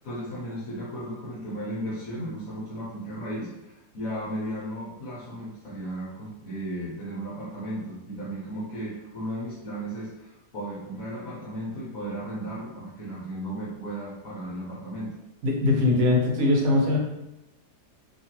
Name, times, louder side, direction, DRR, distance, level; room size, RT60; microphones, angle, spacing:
voice 1, 0.0-15.1, right 1 dB, 65° left, -6 dB, 1.0 m, -35 dB
voice 2, 15.4-17.0, left 2 dB, 65° right, -1 dB, 1.0 m, -21 dB
2.8 x 2.4 x 2.8 m, 0.93 s
omnidirectional pair, 1.8 m